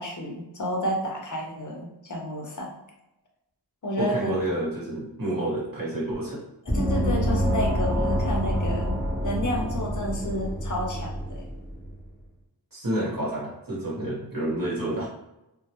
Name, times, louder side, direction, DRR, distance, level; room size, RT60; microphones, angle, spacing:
voice 1, 0.0-2.8 3.8-4.4 6.7-11.5, equal, 45° left, 0 dB, 0.6 m, -31 dB
voice 2, 4.0-6.4 12.7-15.1, right 1 dB, 50° right, -7 dB, 0.9 m, -29 dB
Gong, 6.7-11.9, equal, ahead, 0.5 m, -27 dB
2.1 x 2.0 x 2.8 m, 0.91 s
wide cardioid pair, 50°, 44 cm